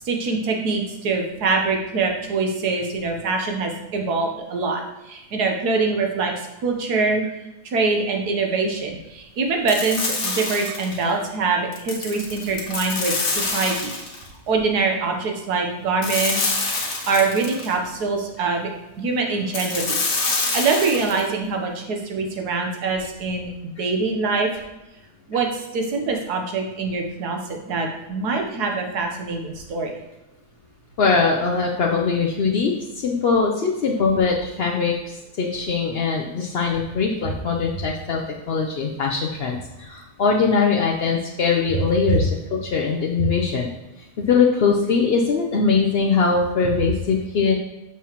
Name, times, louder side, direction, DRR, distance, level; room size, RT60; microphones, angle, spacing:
voice 1, 0.0-6.3 6.6-7.2 7.6-13.9 14.5-16.6 17.1-18.7 19.0-20.0 20.5-24.5 25.3-30.0, right 4 dB, 70° right, 2 dB, 1.5 m, -24 dB
sound 1, 9.7-11.0 11.7-14.3 16.0-17.7 19.5-21.2, left 3 dB, 50° left, 1.2 m, -26 dB
voice 2, 31.0-34.9 35.4-38.2 38.5-43.7 44.3-47.5, left 5 dB, 70° left, -1 dB, 0.5 m, -21 dB
6.9 x 6.1 x 3.0 m, 0.98 s
omnidirectional pair, 1.8 m